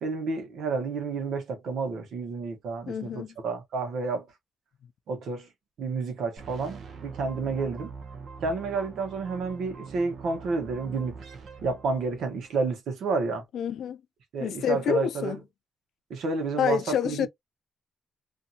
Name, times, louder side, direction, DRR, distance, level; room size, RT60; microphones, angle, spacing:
voice 1, 0.0-4.3 5.1-5.5 5.8-7.9 8.4-11.2 11.6-13.4 14.3-15.4 16.1-17.3, right 4 dB, 90° right, 1.0 m, -30 dB
voice 2, 2.9-3.3 13.5-14.0 14.4-15.4 16.6-17.3, left 8 dB, 80° left, 0.3 m, -28 dB
sound 1, 6.4-12.5, right 5 dB, 60° right, 0.6 m, -44 dB
2.7 x 2.6 x 2.4 m
wide cardioid pair, 160°, 0 cm